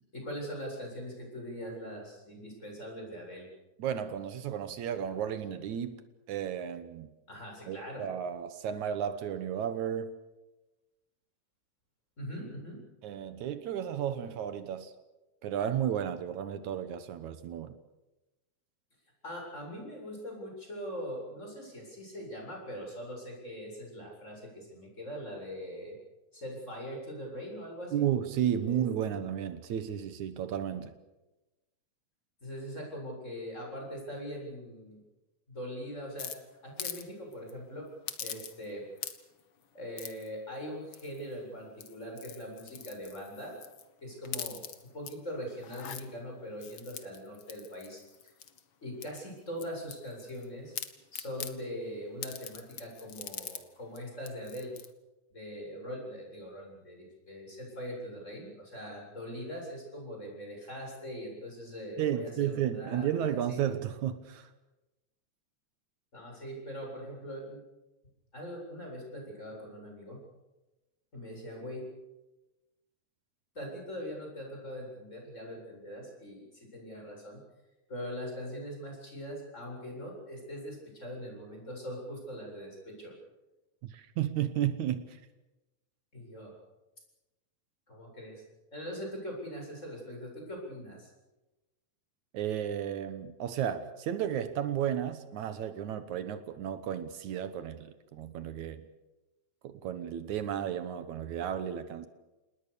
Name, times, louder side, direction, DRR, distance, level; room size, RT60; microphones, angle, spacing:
voice 1, 0.1-3.5 7.3-8.0 12.2-12.8 19.2-25.9 26.3-28.0 28.6-29.1 32.4-35.0 35.5-36.3 36.6-37.8 38.2-38.8 39.7-43.5 44.0-44.6 44.9-48.3 48.8-50.7 51.1-54.7 55.3-63.6 66.1-67.6 68.3-70.2 71.1-71.8 73.5-77.4 77.9-83.1 86.1-86.5 87.9-88.4 88.7-91.1, equal, 20° left, 0 dB, 8.2 m, -41 dB
voice 2, 3.8-6.0 6.3-7.1 7.7-10.1 13.0-14.9 15.4-17.8 27.9-30.9 62.0-64.5 83.8-85.2 92.3-98.9 99.6-102.1, right 9 dB, 75° right, 11 dB, 2.5 m, -33 dB
sound 1, 36.2-37.0 37.3-37.5 38.1-38.7 39.0-39.4 40.0-40.3 40.9-41.3 41.7-43.9 44.2-45.1 45.6-46.0 46.6-48.6 49.0-50.4 50.7-51.5 52.2-53.6 54.0-54.1 54.2-54.9, left 8 dB, 50° left, 2.0 m, -42 dB
28.0 x 20.0 x 6.9 m, 1.0 s
omnidirectional pair, 3.4 m